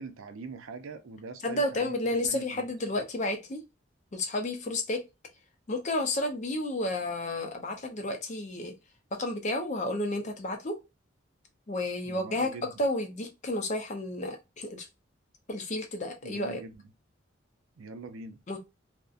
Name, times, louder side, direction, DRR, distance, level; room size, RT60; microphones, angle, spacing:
voice 1, 0.0-1.9 2.3-2.6 12.1-12.7 16.2-16.7 17.8-18.4, right 4 dB, 85° right, 0.4 m, -42 dB
voice 2, 1.4-3.6 4.1-5.0 5.7-8.7 9.1-10.8 11.7-14.9 15.5-16.6 18.5-18.6, left 1 dB, 35° left, 0.5 m, -31 dB
2.5 x 2.1 x 2.4 m
head